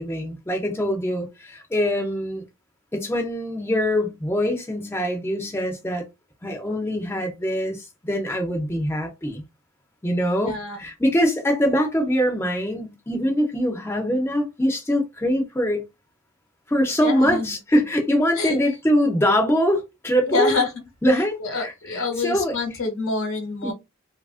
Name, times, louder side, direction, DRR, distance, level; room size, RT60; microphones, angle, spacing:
voice 1, 0.0-2.4 2.9-6.0 6.4-9.4 10.0-15.8 16.7-20.6 21.0-22.6 23.6-23.7, equal, 10° left, 0.5 m, -23 dB
voice 2, 10.4-10.8 17.0-17.5 18.4-18.5 20.3-20.7 21.4-23.7, left 3 dB, 65° left, 1.0 m, -26 dB
3.1 x 2.4 x 2.4 m
head